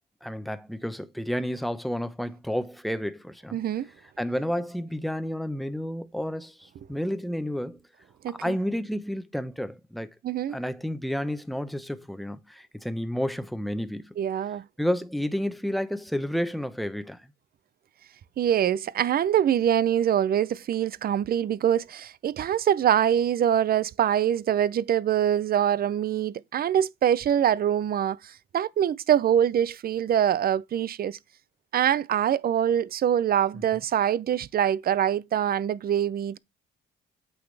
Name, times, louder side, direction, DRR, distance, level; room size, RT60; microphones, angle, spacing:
voice 1, 0.2-3.6 4.0-7.8 8.3-10.1 10.5-14.1 14.8-17.2 33.5-33.8, equal, ahead, 0.9 m, -31 dB
voice 2, 3.5-3.9 8.2-8.6 10.2-10.6 14.2-14.6 18.4-31.2 31.7-36.4, right 10 dB, 50° right, 0.5 m, -24 dB
8.5 x 6.1 x 3.3 m
cardioid pair, 90°, 20 cm